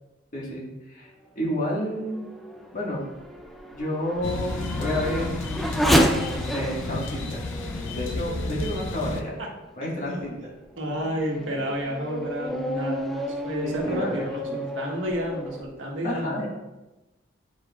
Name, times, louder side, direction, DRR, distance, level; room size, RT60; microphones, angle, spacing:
voice 1, 0.3-1.1 1.4-2.3 2.7-3.1 3.7-5.4 5.8-7.4 7.9-9.3 9.8-10.5 13.6-14.1 14.5-14.6 16.0-16.5, equal, 45° left, -3 dB, 1.7 m, -30 dB
Race car auto racing / Accelerating revving vroom, 1.6-9.6 10.2-10.3 10.9-15.6, equal, ahead, 0.4 m, -30 dB
sound 1, 4.2-9.2, left 3 dB, 80° left, 0.6 m, -32 dB
voice 2, 10.1-10.5 10.8-16.4, equal, 90° right, -1 dB, 1.3 m, -31 dB
10.0 x 4.7 x 2.4 m, 1.0 s
head